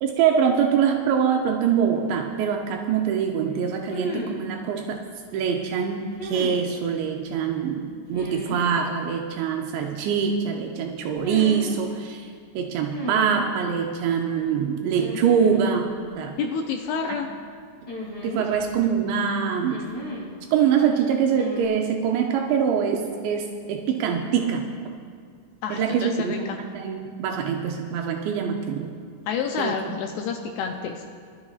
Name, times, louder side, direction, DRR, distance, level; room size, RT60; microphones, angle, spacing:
voice 1, 0.0-5.0 5.3-12.3 12.6-16.4 18.2-19.9 20.5-24.7 25.7-28.9 29.6-30.0, right 7 dB, 85° right, 2 dB, 2.9 m, -24 dB
sound 1, 1.9-2.0 3.9-4.5 6.2-6.7 8.1-8.7 11.2-11.7 12.9-13.5 15.0-15.6 15.9-16.0 17.9-18.8 19.7-20.3 21.3-21.7, left 1 dB, 15° left, 1.3 m, -34 dB
voice 2, 16.4-17.3 25.6-26.4 29.3-31.0, left 6 dB, 80° left, 3 dB, 2.5 m, -29 dB
23.0 x 12.0 x 2.4 m, 2.2 s
omnidirectional pair, 5.1 m